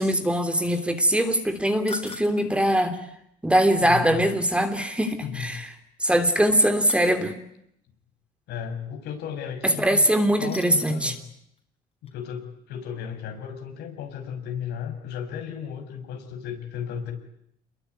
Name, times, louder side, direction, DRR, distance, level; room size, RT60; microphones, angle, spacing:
voice 1, 0.0-3.0 3.4-5.7 6.0-7.4 9.6-11.1, equal, 5° right, 7 dB, 3.2 m, -22 dB
sound 1, 1.9-2.5 4.9-5.0 6.9-7.2 10.5-11.1 11.6-11.7 12.1-12.2, left 5 dB, 35° left, 5.4 m, -41 dB
voice 2, 3.8-4.2 5.2-5.5 8.5-11.2 12.0-17.1, left 8 dB, 80° left, 5 dB, 6.5 m, -35 dB
27.5 x 22.0 x 9.5 m, 0.74 s
cardioid pair, 110°, 17 cm